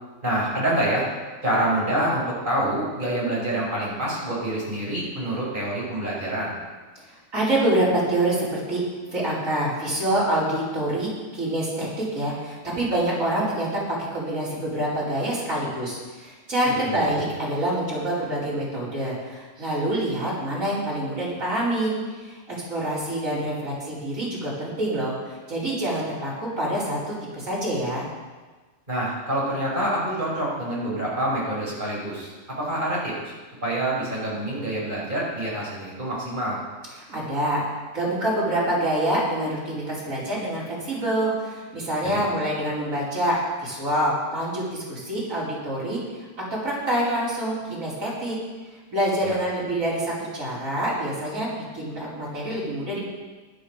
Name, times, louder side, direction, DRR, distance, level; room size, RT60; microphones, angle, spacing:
voice 1, 0.2-1.1 1.4-6.6 16.7-17.0 28.9-32.3 32.6-33.3 33.6-36.6 42.0-42.2 49.2-49.3, right 1 dB, 35° right, -6 dB, 5.5 m, -26 dB
voice 2, 6.9-8.8 9.1-28.1 37.0-37.6 37.9-46.2 46.5-48.3 48.9-53.0, right 1 dB, 80° right, -7 dB, 5.1 m, -26 dB
15.0 x 11.5 x 5.1 m, 1.3 s
omnidirectional pair, 1.4 m